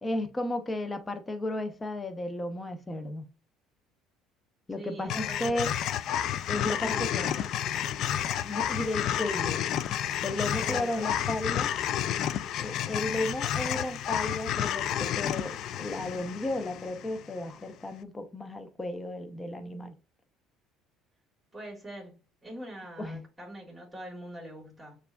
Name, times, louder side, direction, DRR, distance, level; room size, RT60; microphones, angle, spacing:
voice 1, 0.0-3.2 4.7-5.7 6.5-7.3 8.4-9.6 10.2-11.7 12.6-19.9 23.0-23.2, left 1 dB, 20° left, 0.7 m, -34 dB
voice 2, 4.7-5.7 6.5-7.5 10.5-11.4 21.5-22.2 22.4-25.0, right 1 dB, 5° right, 1.9 m, -43 dB
sound 1, 5.1-17.4, left 10 dB, 60° left, 0.3 m, -31 dB
6.5 x 2.5 x 2.3 m
supercardioid pair, 75°, 0 cm